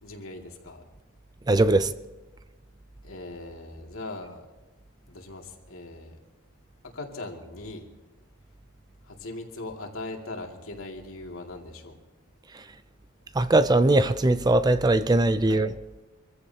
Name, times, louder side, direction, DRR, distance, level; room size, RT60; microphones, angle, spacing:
voice 1, 0.0-0.8 3.0-4.5 5.1-6.2 6.9-7.9 9.1-12.0 15.5-15.6, left 2 dB, 80° left, 2.4 m, -39 dB
voice 2, 1.5-1.9 12.5-12.6 13.3-15.7, right 2 dB, 20° right, 0.4 m, -20 dB
25.0 x 15.0 x 2.9 m
head